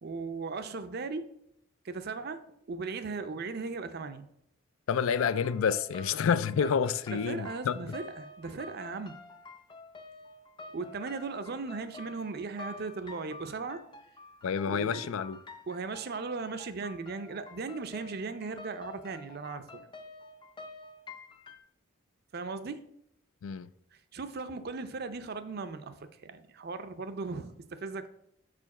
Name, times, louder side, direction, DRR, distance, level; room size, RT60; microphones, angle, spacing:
voice 1, 0.0-1.3 1.8-4.3 7.1-9.2 10.7-13.8 14.7-15.1 15.7-19.9 22.3-22.8 24.1-28.1, right 4 dB, 50° right, 0.5 m, -37 dB
voice 2, 4.9-7.7 14.4-15.4 23.4-23.7, left 6 dB, 80° left, 0.4 m, -28 dB
sound 1, 5.1-21.6, left 3 dB, 25° left, 0.5 m, -49 dB
5.0 x 4.4 x 5.9 m
head